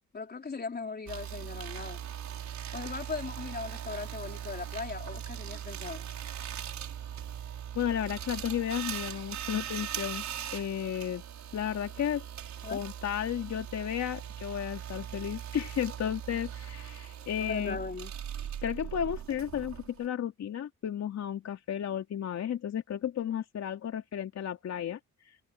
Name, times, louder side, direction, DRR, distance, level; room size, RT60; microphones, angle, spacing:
voice 1, 0.1-2.0 2.7-6.1 12.6-12.8 17.4-18.1, left 4 dB, 30° left, 3.9 m, -38 dB
sound 1, 1.1-20.1, right 9 dB, 65° right, 5.5 m, -40 dB
voice 2, 7.7-10.2 10.5-11.2 11.5-12.2 12.7-17.8 18.6-25.0, left 9 dB, 60° left, 2.9 m, -33 dB
cardioid pair, 90°, 30 cm